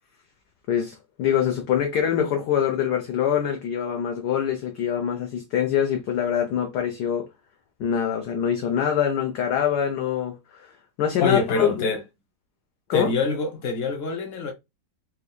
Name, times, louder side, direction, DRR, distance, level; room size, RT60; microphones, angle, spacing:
voice 1, 0.7-7.3 7.8-10.7 11.0-11.8 12.9-13.1, left 9 dB, 70° left, 1.0 m, -24 dB
voice 2, 11.2-12.0 12.9-14.5, left 4 dB, 40° left, 1.1 m, -25 dB
4.3 x 2.6 x 2.2 m
omnidirectional pair, 2.1 m